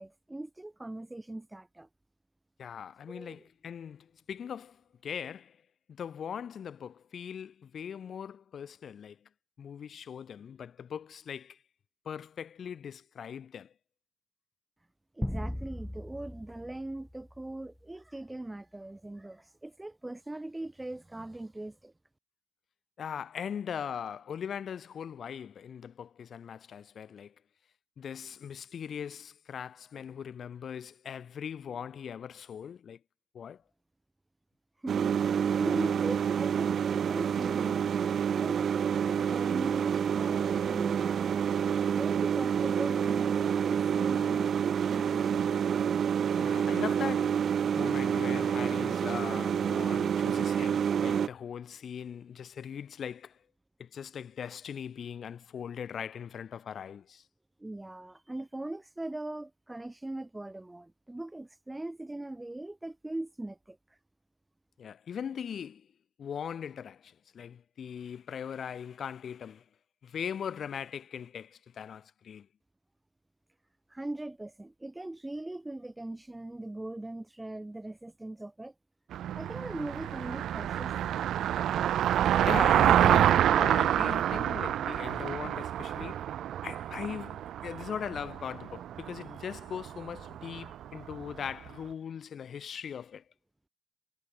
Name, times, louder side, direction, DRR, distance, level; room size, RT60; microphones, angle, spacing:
voice 1, 0.0-1.9 3.1-3.4 15.1-21.9 34.8-41.4 41.8-44.5 44.8-45.5 57.6-63.8 73.9-78.7 79.3-81.1, right 2 dB, 10° right, 4.4 m, -40 dB
voice 2, 2.6-5.6 5.9-9.2 9.6-11.6 12.0-13.7 23.0-27.3 28.0-33.0 33.3-33.6 46.4-47.4 47.8-53.4 53.8-57.2 64.8-65.9 66.2-69.6 70.0-72.5 82.4-86.3 86.6-93.2, left 8 dB, 55° left, 3.2 m, -40 dB
sound 1, 15.2-17.8, left 1 dB, 5° left, 4.2 m, -38 dB
sound 2, 34.9-51.3, right 8 dB, 55° right, 1.0 m, -28 dB
Car passing by, 79.1-91.4, right 11 dB, 70° right, 2.3 m, -27 dB
cardioid pair, 90°, 0 cm